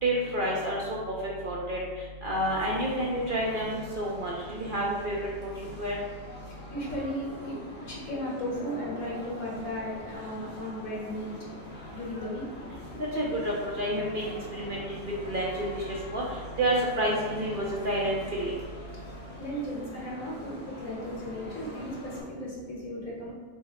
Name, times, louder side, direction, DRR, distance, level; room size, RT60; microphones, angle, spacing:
voice 1, 0.0-0.8 1.4-1.8 2.2-5.3 5.8-5.9 13.1-15.0 15.3-15.8 16.1-16.2 16.6-18.5, right 1 dB, 55° right, -4 dB, 0.6 m, -29 dB
sound 1, 2.4-22.2, left 1 dB, 25° left, 1.1 m, -44 dB
voice 2, 6.7-7.5 7.9-11.3 11.9-12.4 19.4-23.3, equal, 80° left, -4 dB, 1.6 m, -35 dB
5.5 x 2.1 x 4.2 m, 1.5 s
omnidirectional pair, 1.4 m